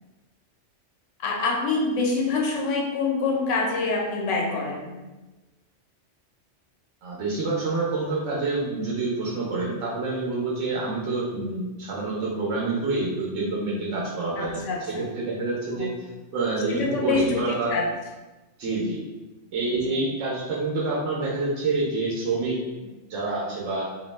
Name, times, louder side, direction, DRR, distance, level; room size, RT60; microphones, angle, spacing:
voice 1, 1.2-5.0 14.4-15.1 15.7-15.9 16.7-17.8 19.7-20.0, left 4 dB, 90° left, -1 dB, 1.0 m, -26 dB
voice 2, 7.0-15.9 16.3-17.7 18.6-19.1 19.5-22.6 23.1-23.9, right 3 dB, 90° right, -5 dB, 0.9 m, -27 dB
2.6 x 2.1 x 3.1 m, 1.1 s
omnidirectional pair, 1.3 m